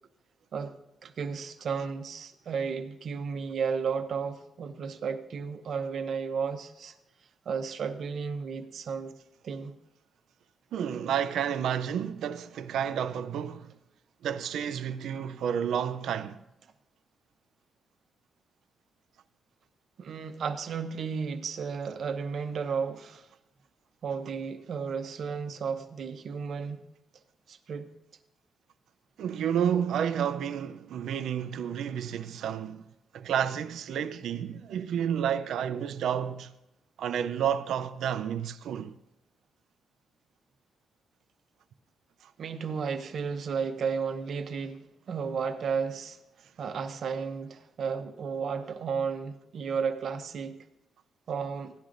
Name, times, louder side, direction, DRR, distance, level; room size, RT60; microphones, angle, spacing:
voice 1, 1.0-6.9 7.5-9.1 9.4-9.7 20.0-23.3 24.0-26.8 27.5-27.9 42.4-46.2 46.6-50.6 51.3-51.7, right 6 dB, 55° right, 0.8 m, -33 dB
voice 2, 10.7-13.7 14.2-16.4 29.2-32.8 33.1-36.5 37.0-39.0 42.2-42.3, right 8 dB, 80° right, 0.5 m, -30 dB
17.0 x 11.5 x 2.6 m
cardioid pair, 145°, 0 cm